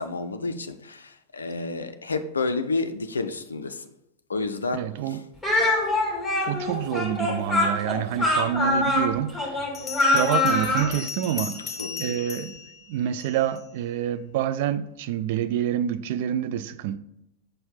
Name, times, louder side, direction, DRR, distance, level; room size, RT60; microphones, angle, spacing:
voice 1, 0.0-3.9 4.3-5.2 11.6-12.2, left 3 dB, 75° left, 0.4 m, -30 dB
voice 2, 4.7-5.2 6.5-9.6 10.0-11.6 12.0-12.6 12.9-17.0, right 10 dB, 50° right, 0.3 m, -27 dB
Speech, 5.4-10.9, left 2 dB, 5° right, 2.1 m, -23 dB
Bell, 9.7-13.6, left 5 dB, 25° left, 0.9 m, -37 dB
6.6 x 4.3 x 3.8 m
figure-of-eight pair, 90°, 0 cm